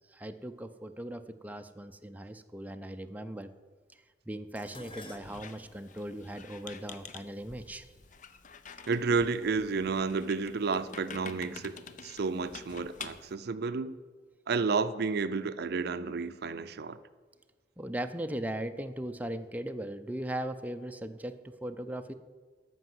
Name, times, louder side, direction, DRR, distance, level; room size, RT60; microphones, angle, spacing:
voice 1, 0.1-3.5 4.3-7.9 17.8-22.1, right 1 dB, 10° right, 0.5 m, -38 dB
Dishes pots and pans, 4.6-8.9 9.8-10.2 10.6-11.4 11.7-11.8, left 2 dB, 30° left, 1.1 m, -54 dB
Squeak, 5.2-13.3, left 5 dB, 45° left, 0.7 m, -48 dB
voice 2, 8.9-11.8 12.0-14.0 14.5-17.0, right 4 dB, 60° right, 0.5 m, -31 dB
13.5 x 5.4 x 7.7 m
head